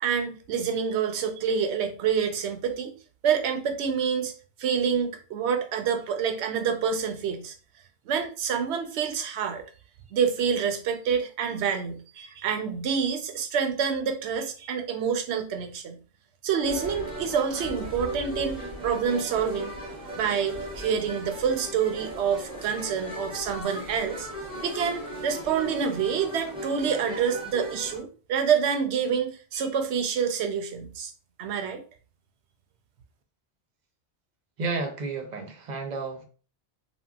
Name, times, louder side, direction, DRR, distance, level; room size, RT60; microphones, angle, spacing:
voice 1, 0.0-2.9 3.2-4.3 4.6-7.5 8.1-9.6 10.1-16.0 16.4-19.7 20.2-24.3 24.6-31.1 31.4-31.8, right 7 dB, 75° right, 0.9 m, -27 dB
sound 1, 16.6-28.0, equal, 5° right, 0.6 m, -37 dB
voice 2, 34.6-36.2, right 3 dB, 50° right, 0.6 m, -31 dB
3.4 x 2.2 x 2.3 m
omnidirectional pair, 1.1 m